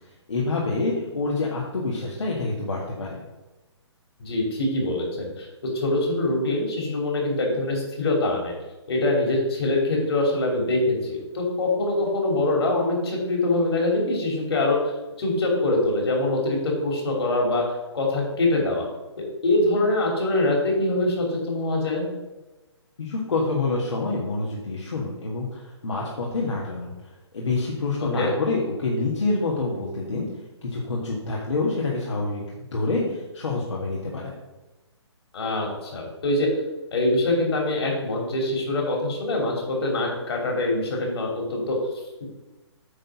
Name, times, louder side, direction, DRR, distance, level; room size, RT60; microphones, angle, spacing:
voice 1, 0.3-3.2 23.0-26.9 27.3-30.2 30.6-32.4 32.7-34.3, left 3 dB, 75° left, -3 dB, 1.8 m, -27 dB
voice 2, 4.2-5.5 5.7-8.5 8.9-14.8 15.2-17.6 17.9-18.9 19.4-22.1 28.0-28.3 35.3-36.5 36.9-41.8, left 2 dB, 60° left, 0 dB, 2.9 m, -24 dB
8.8 x 4.0 x 5.9 m, 1.1 s
figure-of-eight pair, 135°, 15 cm